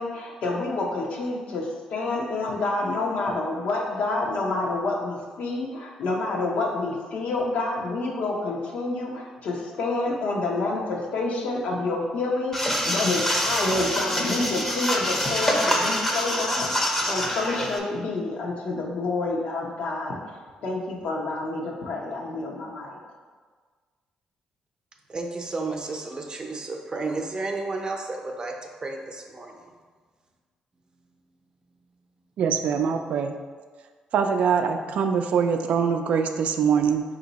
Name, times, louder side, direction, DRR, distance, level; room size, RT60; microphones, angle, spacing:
voice 1, 0.0-23.0, left 2 dB, 70° left, -1 dB, 0.9 m, -28 dB
sound 1, 12.5-17.8, equal, 10° left, 0.6 m, -25 dB
voice 2, 25.1-29.7, right 3 dB, 35° right, 2 dB, 0.6 m, -32 dB
voice 3, 32.4-33.3 34.1-37.0, right 6 dB, 70° right, 6 dB, 0.3 m, -23 dB
4.5 x 2.8 x 4.0 m, 1.5 s
cardioid pair, 85°, 2 cm